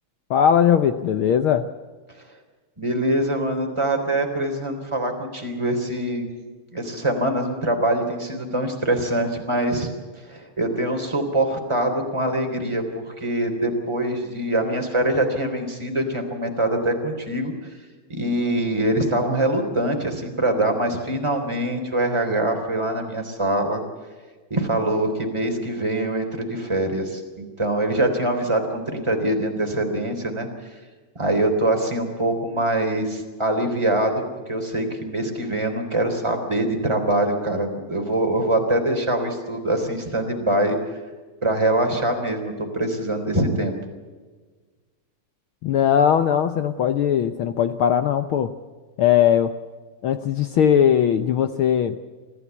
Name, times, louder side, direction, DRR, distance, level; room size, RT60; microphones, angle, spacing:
voice 1, 0.3-1.7 45.6-48.5 49.0-49.6 50.0-52.0, left 9 dB, 80° left, 10 dB, 1.2 m, -19 dB
voice 2, 2.8-6.3 6.7-9.9 10.3-17.5 18.1-23.8 24.5-30.5 31.1-40.8 41.4-43.8, right 1 dB, 10° right, 3 dB, 3.3 m, -24 dB
25.5 x 15.0 x 8.3 m, 1.4 s
omnidirectional pair, 3.3 m